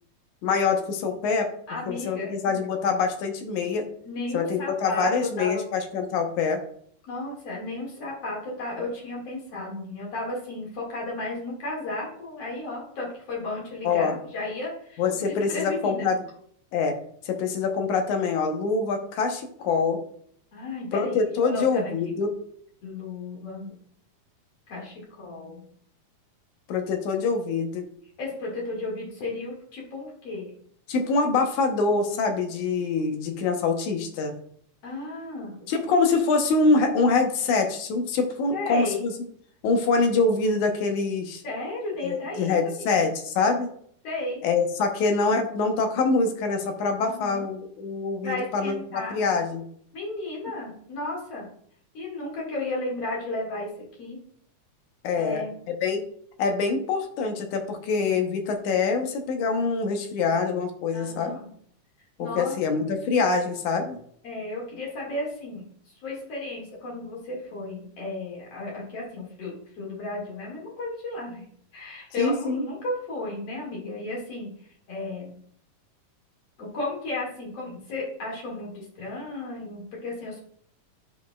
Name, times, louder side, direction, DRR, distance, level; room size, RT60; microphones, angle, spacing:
voice 1, 0.4-1.5 1.9-3.8 4.3-6.6 13.8-14.2 15.0-16.2 16.7-16.9 17.3-20.0 20.9-22.3 26.7-27.9 30.9-34.4 35.7-39.1 39.6-41.4 42.0-43.7 44.4-49.6 55.0-56.0 56.4-61.4 62.2-64.0 72.2-72.6, left 4 dB, 70° left, 4 dB, 2.2 m, -25 dB
voice 2, 1.7-2.6 4.0-5.6 7.1-16.1 20.5-22.0 22.8-23.8 24.7-25.6 28.2-30.5 34.8-35.6 38.5-39.0 41.4-43.0 44.0-44.4 47.0-47.4 48.2-49.2 49.9-51.5 51.9-53.7 54.0-54.2 55.2-55.5 60.9-61.5 62.2-62.8 64.2-71.5 71.7-75.3 76.6-80.4, left 2 dB, 50° left, -4 dB, 2.8 m, -34 dB
10.5 x 5.3 x 2.3 m, 0.63 s
omnidirectional pair, 3.9 m